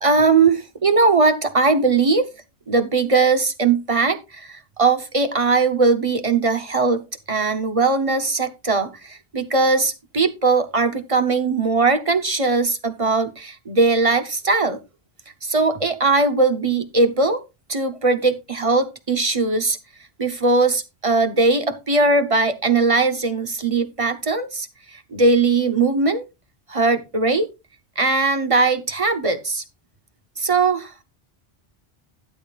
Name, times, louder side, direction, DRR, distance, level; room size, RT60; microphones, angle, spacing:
voice 1, 0.0-2.3 2.7-14.8 15.4-17.4 17.7-19.8 20.2-24.7 24.9-26.2 26.7-27.5 28.0-29.6 30.4-31.0, right 3 dB, 35° right, 0.8 m, -20 dB
12.0 x 9.3 x 2.4 m
omnidirectional pair, 1.1 m